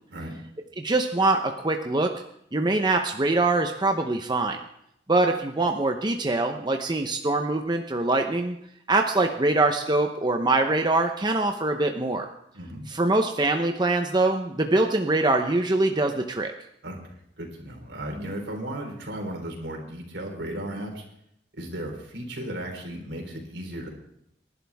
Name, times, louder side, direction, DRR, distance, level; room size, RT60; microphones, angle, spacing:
voice 1, 0.8-2.1 2.5-4.6 5.1-8.6 8.9-12.3 12.9-16.5, right 2 dB, 25° right, 4 dB, 0.9 m, -23 dB
voice 2, 12.5-12.8 16.8-21.0 21.6-23.9, right 1 dB, 75° right, 2 dB, 4.0 m, -35 dB
27.5 x 11.5 x 3.6 m, 0.76 s
head